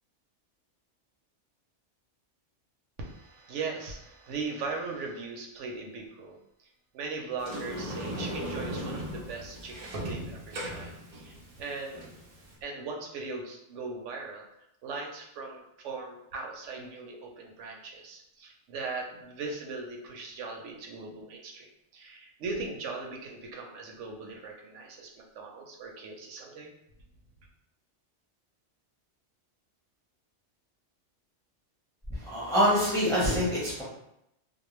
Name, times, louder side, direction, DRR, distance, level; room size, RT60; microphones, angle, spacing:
voice 1, 3.0-6.4 6.9-12.2 12.6-14.4 14.8-21.7 21.9-26.7, right 4 dB, 80° right, 1 dB, 0.9 m, -39 dB
Sliding door, 7.4-12.5, right 1 dB, 60° right, 0.4 m, -37 dB
voice 2, 32.1-33.8, equal, 5° left, -6 dB, 0.6 m, -25 dB
2.3 x 2.0 x 3.0 m, 0.80 s
omnidirectional pair, 1.2 m